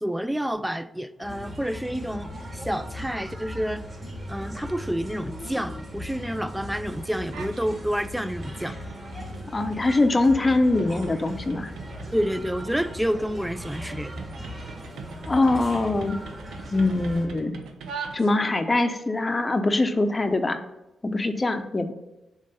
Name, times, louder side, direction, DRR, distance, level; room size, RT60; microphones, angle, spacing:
voice 1, 0.0-3.8 4.3-8.8 12.1-14.2 21.0-21.2, equal, 5° right, 14 dB, 0.4 m, -29 dB
sound 1, 1.2-17.3, equal, 35° right, 2.5 m, -38 dB
sound 2, 7.2-7.7 8.1-18.7, right 5 dB, 85° right, 0.6 m, -42 dB
voice 2, 9.5-11.7 15.3-16.2 16.7-17.6 18.1-20.6 21.0-21.9, left 2 dB, 30° left, 8 dB, 0.7 m, -23 dB
7.5 x 3.2 x 5.5 m, 0.95 s
supercardioid pair, 55°, 0 cm